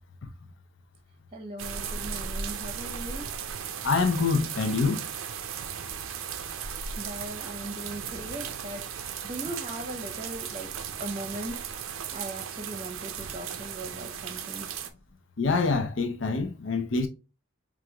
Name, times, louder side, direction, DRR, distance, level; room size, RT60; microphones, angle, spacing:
voice 1, 1.3-3.3 7.0-8.8 9.2-10.7 11.0-14.7, right 1 dB, 30° right, 0.7 m, -39 dB
sound 1, 1.6-14.9, right 7 dB, 80° right, 0.5 m, -36 dB
voice 2, 3.8-5.0 15.4-17.1, left 4 dB, 65° left, 0.5 m, -25 dB
4.6 x 2.4 x 2.8 m
head